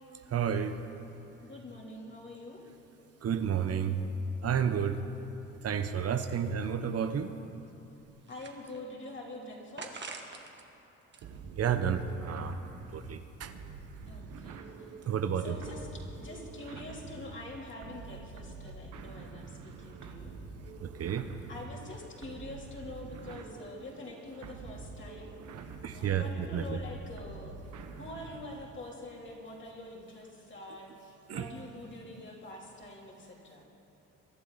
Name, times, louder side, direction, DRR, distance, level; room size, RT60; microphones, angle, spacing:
voice 1, 0.3-0.8 3.2-4.0 4.4-5.0 5.6-7.3 11.6-13.5 15.1-15.5 20.8-21.3 25.8-26.8 31.3-31.5, right 7 dB, 55° right, 9 dB, 0.8 m, -31 dB
voice 2, 1.4-2.6 6.1-6.7 8.3-10.1 14.1-14.9 15.4-20.3 21.5-25.4 25.9-27.6 28.0-33.6, left 2 dB, 40° left, -3 dB, 3.2 m, -45 dB
sound 1, 8.2-9.1 9.8-10.6 11.0-12.2, right 4 dB, 35° right, 1.6 m, -47 dB
sound 2, 11.2-28.8, right 4 dB, 75° right, 1.2 m, -47 dB
23.0 x 12.0 x 4.1 m, 2.9 s
cardioid pair, 90°, 30 cm